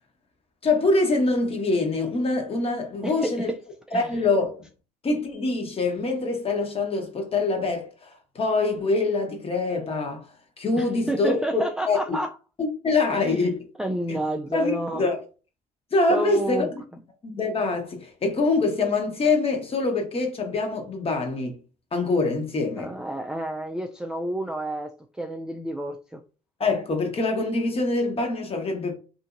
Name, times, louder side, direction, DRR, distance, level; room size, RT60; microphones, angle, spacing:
voice 1, 0.6-3.5 3.9-4.5 5.0-10.3 10.6-12.2 12.6-13.6 14.1-14.2 14.5-15.2 15.9-16.7 17.2-21.6 21.9-22.9 26.6-28.9, left 3 dB, 35° left, 1.0 m, -24 dB
voice 2, 3.0-3.6 3.9-4.2 10.8-12.3 13.1-15.0 16.1-16.7 22.8-26.2, right 1 dB, 5° right, 0.3 m, -30 dB
2.7 x 2.6 x 2.5 m
hypercardioid pair, 65°, 18 cm